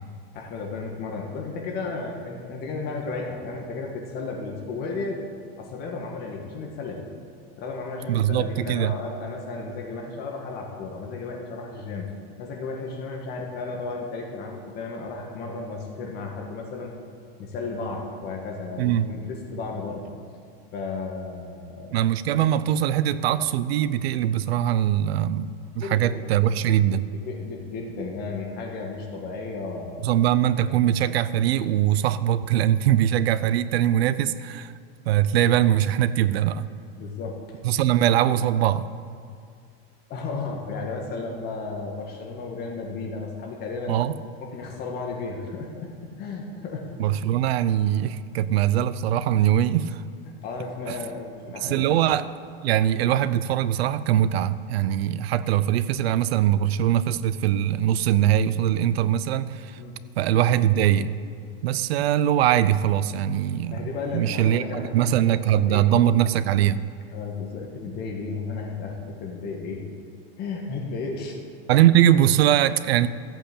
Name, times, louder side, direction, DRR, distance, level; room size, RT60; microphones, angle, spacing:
voice 1, 0.3-5.3 5.6-7.1 7.6-12.1 12.4-16.9 17.4-20.1 20.7-22.0 25.8-26.3 27.1-30.2 30.7-30.8 37.0-37.4 40.1-44.0 44.4-47.2 50.2-52.0 59.8-60.0 63.7-66.2 67.1-69.8 70.4-71.4, left 3 dB, 30° left, 1 dB, 1.8 m, -34 dB
voice 2, 8.1-9.0 18.8-19.1 21.9-27.1 30.0-34.7 35.1-36.7 37.6-38.9 43.9-44.1 47.0-50.0 50.9-51.0 51.6-52.3 52.6-59.8 60.2-61.1 61.6-66.9 71.7-73.1, right 11 dB, 85° right, 15 dB, 0.7 m, -22 dB
15.0 x 8.2 x 8.5 m, 2.3 s
supercardioid pair, 165°, 30 cm